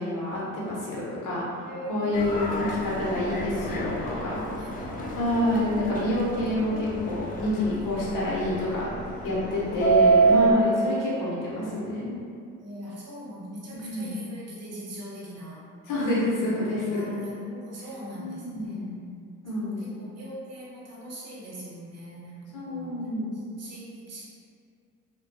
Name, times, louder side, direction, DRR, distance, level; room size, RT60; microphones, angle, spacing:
voice 1, 0.0-3.9 4.2-4.7 5.1-8.9 9.2-12.2 13.8-14.1 15.9-17.1 18.2-19.0 19.4-19.8 22.5-23.3, left 1 dB, 60° left, -6 dB, 0.9 m, -28 dB
voice 2, 1.6-2.8 4.6-5.4 9.5-10.4 12.6-15.6 16.9-19.0 19.5-23.0 23.3-24.2, equal, 40° right, -6 dB, 0.9 m, -41 dB
Subway metro underground, 2.1-10.5, right 4 dB, 25° left, 0.3 m, -27 dB
2.3 x 2.2 x 2.6 m, 2.3 s
supercardioid pair, 75°, 37 cm